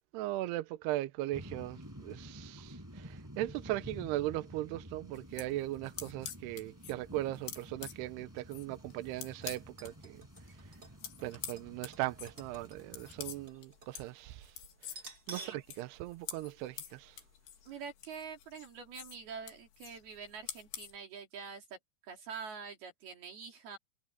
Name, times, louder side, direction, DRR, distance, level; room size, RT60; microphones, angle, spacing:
voice 1, 0.1-10.2 11.2-14.5 14.8-14.9 15.3-17.2, right 16 dB, 85° right, 2.7 m, -38 dB
sound 1, 1.3-13.5, equal, 5° right, 5.2 m, -51 dB
sound 2, 5.2-9.9 10.3-21.0, left 10 dB, 75° left, 4.1 m, -48 dB
sound 3, 9.3-14.0 14.3-14.4 14.9-15.7 16.0-16.1 16.9-17.1 17.4-17.5, right 3 dB, 25° right, 5.7 m, -52 dB
voice 2, 17.7-21.8 22.0-23.8, right 6 dB, 65° right, 5.0 m, -46 dB
omnidirectional pair, 4.8 m